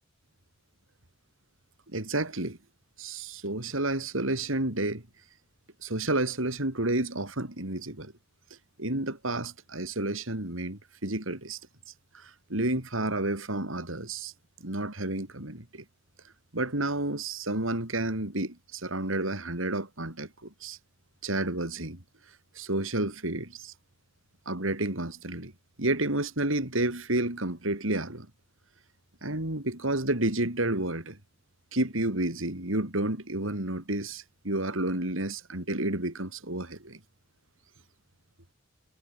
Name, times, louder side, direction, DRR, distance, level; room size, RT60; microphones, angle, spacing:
voice 1, 1.9-2.6 3.0-5.0 5.8-8.1 8.8-11.6 12.1-14.3 14.6-15.8 16.5-20.8 21.2-22.0 22.5-23.7 24.5-25.5 25.8-28.3 29.2-31.2 31.7-37.0, right 2 dB, 75° right, 4.4 m, -30 dB
head